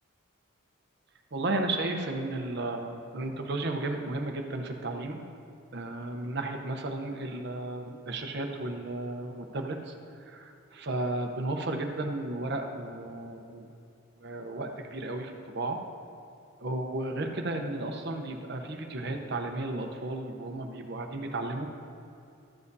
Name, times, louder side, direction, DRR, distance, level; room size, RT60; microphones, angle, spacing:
voice 1, 1.3-5.3 5.7-13.7 14.2-15.8 16.6-21.7, right 2 dB, 55° right, 4 dB, 0.8 m, -34 dB
13.0 x 7.5 x 2.7 m, 2.6 s
head